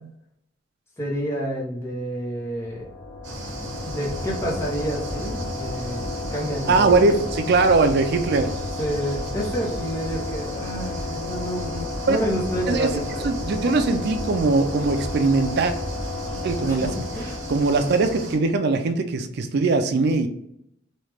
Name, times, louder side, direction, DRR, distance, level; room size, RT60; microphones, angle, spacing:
voice 1, 1.0-2.9 3.8-7.2 7.8-8.0 8.8-13.3 16.3-17.4, equal, 15° left, -5 dB, 0.8 m, -29 dB
sound 1, 2.6-18.5, left 2 dB, 80° left, 0.6 m, -32 dB
sound 2, 3.2-18.4, right 2 dB, 75° right, 0.9 m, -37 dB
voice 2, 6.7-8.5 12.1-12.2 12.7-12.9 13.2-15.7 16.4-16.9 17.5-20.3, right 3 dB, 55° right, 7 dB, 0.4 m, -20 dB
3.1 x 2.4 x 3.3 m, 0.76 s
head